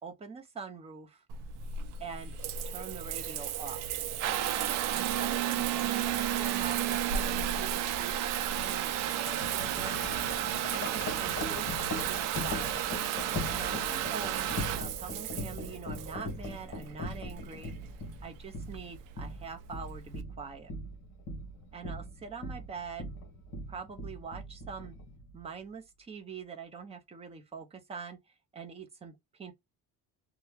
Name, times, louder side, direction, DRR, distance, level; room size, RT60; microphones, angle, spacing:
voice 1, 0.0-1.2 2.0-2.4 2.6-4.0 4.9-10.0 10.7-11.7 12.1-12.8 13.5-17.7 18.2-20.7 21.7-23.1 23.7-25.0 25.3-28.2 28.5-29.5, right 5 dB, 20° right, 0.5 m, -44 dB
Water tap faucet / Bathtub (filling or washing) / Trickle dribble, 1.3-20.2, right 10 dB, 65° right, 0.5 m, -33 dB
Wind chime, 9.3-25.4, left 2 dB, 50° left, 1.1 m, -40 dB
2.8 x 2.3 x 3.2 m
cardioid pair, 170°, 35 cm